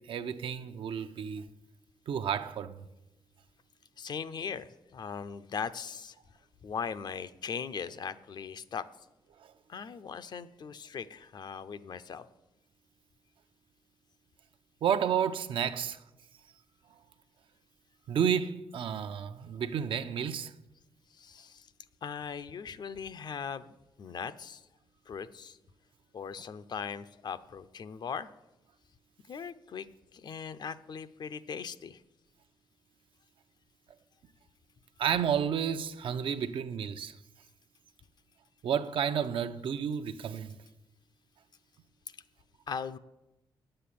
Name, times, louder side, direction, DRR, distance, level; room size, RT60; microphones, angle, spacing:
voice 1, 0.1-1.4 2.1-2.8 9.4-9.5 14.8-16.0 18.1-20.5 35.0-37.1 38.6-40.5, right 8 dB, 70° right, 0.7 m, -31 dB
voice 2, 4.0-6.2 6.6-8.9 9.7-12.3 21.1-21.7 22.0-24.7 25.1-25.6 26.1-28.3 29.3-29.9 30.1-32.0 42.7-43.0, left 6 dB, 50° left, 0.6 m, -39 dB
9.7 x 7.8 x 8.5 m
cardioid pair, 125°, 9 cm